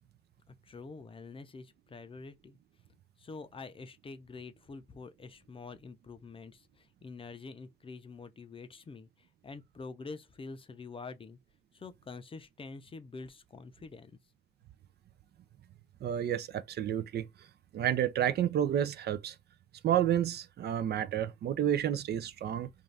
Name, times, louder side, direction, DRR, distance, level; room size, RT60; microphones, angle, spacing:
voice 1, 0.5-2.6 3.2-11.4 11.7-14.2, left 4 dB, 25° left, 0.5 m, -46 dB
voice 2, 16.0-17.3 17.7-19.4 19.8-22.7, right 10 dB, 55° right, 0.4 m, -30 dB
2.5 x 2.3 x 3.2 m
cardioid pair, 90°, 20 cm